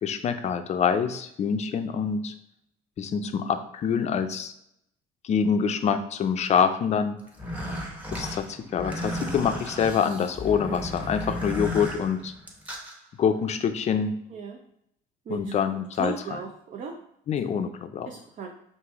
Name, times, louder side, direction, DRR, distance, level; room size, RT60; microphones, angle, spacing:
voice 1, 0.0-2.3 3.0-4.5 5.2-7.2 8.1-12.3 13.2-14.1 15.3-16.4 17.3-18.1, left 7 dB, 40° left, 9 dB, 0.4 m, -26 dB
sound 1, 7.3-12.9, left 1 dB, 10° right, 0.9 m, -34 dB
voice 2, 16.0-17.0 18.1-18.5, right 6 dB, 50° right, 1 dB, 0.6 m, -36 dB
5.0 x 2.6 x 3.5 m, 0.75 s
cardioid pair, 110°, 17 cm